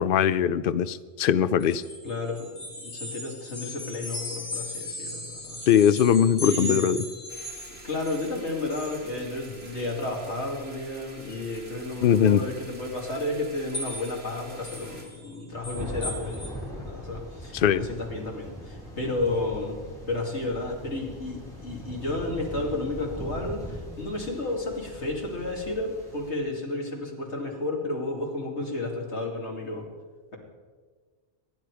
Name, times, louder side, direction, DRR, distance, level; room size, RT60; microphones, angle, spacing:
voice 1, 0.0-1.8 5.7-7.0 12.0-12.4 17.5-17.9, left 9 dB, 60° left, 14 dB, 0.7 m, -21 dB
sound 1, 1.6-8.3 8.7-9.1 9.4-9.7 10.3-10.4 13.7-14.2 14.6-16.5, left 1 dB, 45° left, 2.7 m, -37 dB
voice 2, 2.0-5.6 6.4-6.9 7.8-19.8 20.1-29.8, left 2 dB, 80° left, -1 dB, 3.1 m, -32 dB
sound 2, 7.3-15.1, right 1 dB, 65° right, 3.1 m, -47 dB
Thunder, 15.5-26.3, equal, 5° left, 5.2 m, -40 dB
25.5 x 10.5 x 4.9 m, 1.5 s
omnidirectional pair, 1.1 m